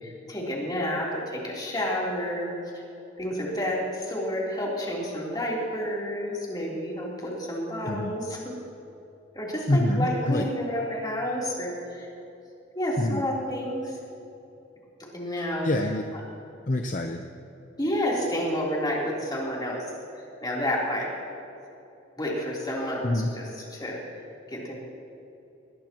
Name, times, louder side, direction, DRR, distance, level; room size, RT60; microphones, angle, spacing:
voice 1, 0.0-2.5 3.2-8.5 9.3-12.1 12.7-14.0 15.1-15.7 17.8-19.8 20.1-21.1 22.2-24.0 24.5-24.8, equal, 20° left, -5 dB, 3.5 m, -30 dB
voice 2, 9.7-10.5 13.0-13.2 15.4-16.0 16.7-17.2 23.0-23.3, left 1 dB, 40° left, 4 dB, 0.7 m, -26 dB
20.5 x 19.5 x 3.0 m, 2.9 s
head